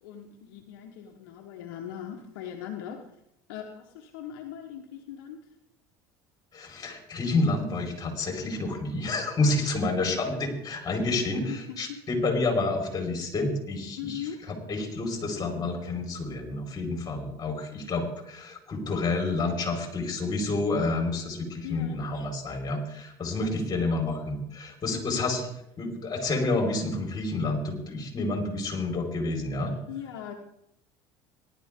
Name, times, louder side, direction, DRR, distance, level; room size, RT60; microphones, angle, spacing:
voice 1, 0.0-3.1 3.5-5.5 10.1-10.4 11.5-12.0 14.0-14.5 21.6-22.0 23.7-24.1 24.9-25.2 29.9-30.3, left 9 dB, 80° left, 3 dB, 1.3 m, -40 dB
voice 2, 6.5-25.5 25.8-29.7, left 2 dB, 35° left, 1 dB, 4.8 m, -29 dB
18.5 x 11.5 x 3.8 m, 0.81 s
supercardioid pair, 85°, 11 cm